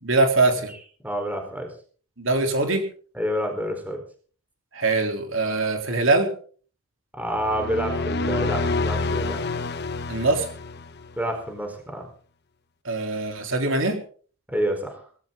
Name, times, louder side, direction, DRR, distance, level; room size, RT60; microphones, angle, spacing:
voice 1, 0.0-0.7 2.2-2.8 4.7-6.3 10.1-10.5 12.8-14.0, right 3 dB, 60° right, 4 dB, 3.7 m, -22 dB
voice 2, 1.0-1.7 3.1-4.0 7.1-9.4 11.2-12.0 14.5-15.0, equal, 5° right, 4 dB, 4.5 m, -28 dB
sound 1, 7.3-11.2, left 3 dB, 45° left, 1.1 m, -28 dB
19.5 x 17.0 x 4.0 m, 0.43 s
head